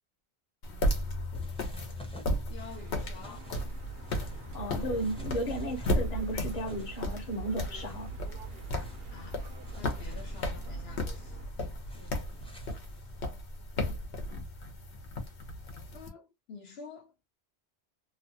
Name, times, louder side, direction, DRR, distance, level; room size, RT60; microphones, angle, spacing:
sound 1, 0.6-16.1, left 1 dB, 85° left, 1.1 m, -35 dB
sound 2, 1.3-13.2, equal, 5° left, 0.5 m, -53 dB
voice 1, 1.7-2.1 2.5-3.5 9.1-9.4 9.7-11.4 11.9-12.6 15.9-17.1, left 4 dB, 70° left, 0.9 m, -49 dB
sound 3, 2.6-11.5, right 5 dB, 70° right, 0.9 m, -53 dB
voice 2, 4.5-8.1, right 1 dB, 40° left, 0.9 m, -34 dB
3.0 x 2.2 x 2.7 m
omnidirectional pair, 1.1 m